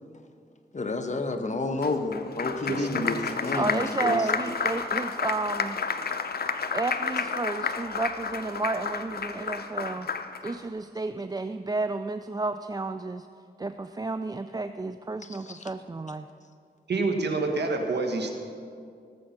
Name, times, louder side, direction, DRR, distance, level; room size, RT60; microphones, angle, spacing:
voice 1, 0.7-4.2 15.5-15.7, left 2 dB, 45° left, 6 dB, 1.2 m, -30 dB
Applause, 1.8-10.6, left 5 dB, 60° left, 0.8 m, -31 dB
voice 2, 2.7-3.4 16.9-18.3, right 3 dB, 75° right, 4 dB, 1.5 m, -28 dB
voice 3, 3.5-5.8 6.7-10.1 10.4-13.3 13.6-16.3, right 3 dB, 20° right, 10 dB, 0.4 m, -31 dB
18.0 x 7.6 x 5.8 m, 2.3 s
cardioid pair, 60°, 18 cm